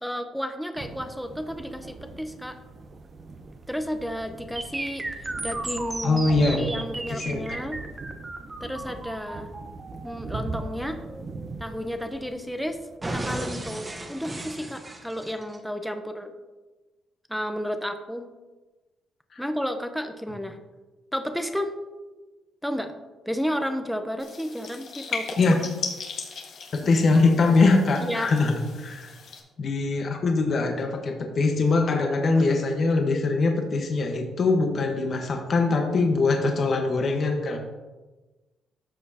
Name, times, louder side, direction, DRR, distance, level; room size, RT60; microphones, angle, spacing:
voice 1, 0.0-2.6 3.7-6.2 6.5-7.8 8.6-9.5 10.0-11.0 11.6-12.8 13.1-16.3 17.3-18.3 19.4-20.6 21.1-21.7 22.6-22.9 23.3-25.6 28.0-28.3, equal, ahead, 6 dB, 0.7 m, -32 dB
sound 1, 0.8-13.0, right 3 dB, 45° right, 0.9 m, -41 dB
sound 2, 4.6-12.5 13.0-15.6, right 2 dB, 20° right, 1.1 m, -35 dB
voice 2, 6.0-6.7 7.1-7.4 19.3-19.4 25.4-25.6 26.7-29.1 29.6-37.6, left 3 dB, 50° left, 3 dB, 1.2 m, -22 dB
sound 3, 24.2-29.4, left 5 dB, 70° left, 1.6 m, -37 dB
12.5 x 6.4 x 2.8 m, 1.2 s
cardioid pair, 90°, 0 cm